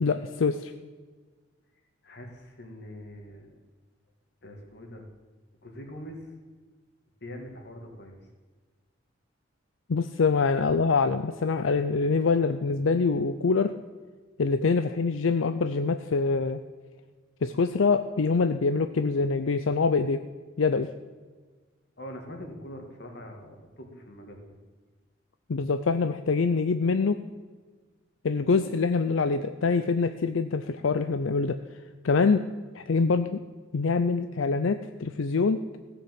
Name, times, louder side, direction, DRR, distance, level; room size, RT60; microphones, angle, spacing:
voice 1, 0.0-0.7 9.9-13.7 14.4-16.6 17.4-20.2 20.6-20.9 25.5-27.2 28.2-31.6 32.0-32.4 32.7-33.4 33.7-35.6, left 4 dB, 85° left, 10 dB, 0.5 m, -25 dB
voice 2, 2.0-3.6 4.4-5.1 5.6-6.3 7.2-8.2 22.0-24.6, equal, 55° left, 3 dB, 2.3 m, -43 dB
16.0 x 7.2 x 7.7 m, 1.4 s
head